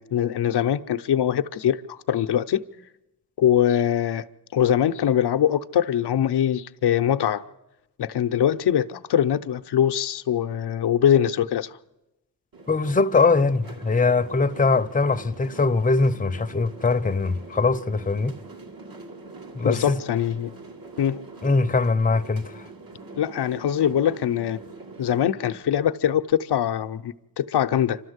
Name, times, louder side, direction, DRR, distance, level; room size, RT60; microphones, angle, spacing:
voice 1, 0.0-2.6 3.4-4.2 4.5-7.4 8.0-11.7 19.6-20.5 21.0-21.2 23.2-24.6 25.0-28.0, left 10 dB, 80° left, 0.7 m, -22 dB
sound 1, 12.5-25.2, right 3 dB, 60° right, 2.5 m, -43 dB
voice 2, 12.7-18.3 19.5-20.0 21.4-22.7, left 3 dB, 20° left, 0.7 m, -22 dB
27.5 x 13.0 x 8.0 m
cardioid pair, 70°, 39 cm